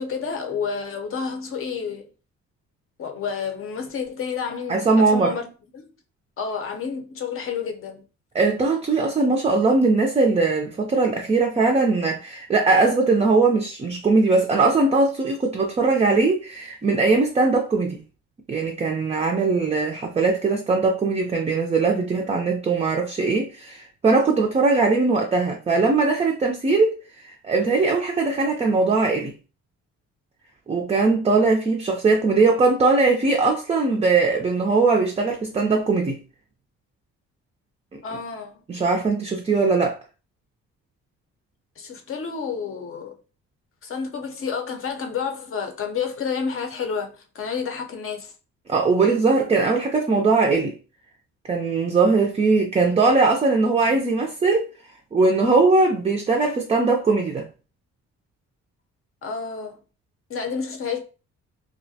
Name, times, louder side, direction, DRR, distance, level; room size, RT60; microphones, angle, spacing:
voice 1, 0.0-2.1 3.0-5.8 6.4-8.0 38.0-38.6 41.8-43.2 43.8-48.3 59.2-59.8 60.3-61.0, left 6 dB, 45° left, 0.6 m, -30 dB
voice 2, 4.7-5.3 8.3-18.0 18.5-26.9 27.4-29.3 30.7-36.2 38.7-40.0 48.7-50.8 51.5-54.6 55.1-57.5, right 3 dB, 20° right, 0.4 m, -20 dB
2.4 x 2.1 x 2.7 m
cardioid pair, 90°, 30 cm